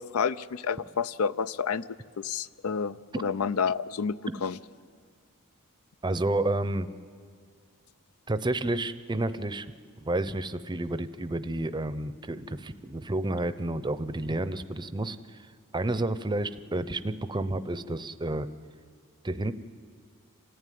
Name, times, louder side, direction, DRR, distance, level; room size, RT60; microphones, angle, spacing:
voice 1, 0.0-1.8 2.2-3.0 3.2-4.1 4.4-4.5, left 6 dB, 75° left, 16 dB, 0.5 m, -29 dB
voice 2, 6.0-6.9 8.3-9.7 10.0-15.5 15.7-18.5 19.2-19.5, right 2 dB, 20° right, 13 dB, 0.6 m, -30 dB
27.5 x 14.5 x 9.3 m, 2.1 s
head